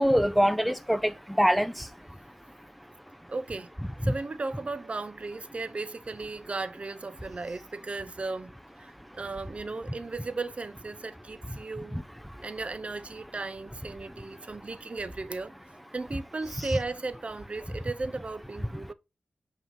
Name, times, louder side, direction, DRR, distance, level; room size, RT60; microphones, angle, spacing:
voice 1, 0.0-1.7 4.1-4.2 16.6-16.8, equal, ahead, 0.5 m, -24 dB
voice 2, 3.3-3.7 4.0-8.5 8.8-12.0 12.4-15.5 15.9-18.9, right 3 dB, 45° right, 0.7 m, -36 dB
7.9 x 2.9 x 5.3 m
cardioid pair, 65°, 3 cm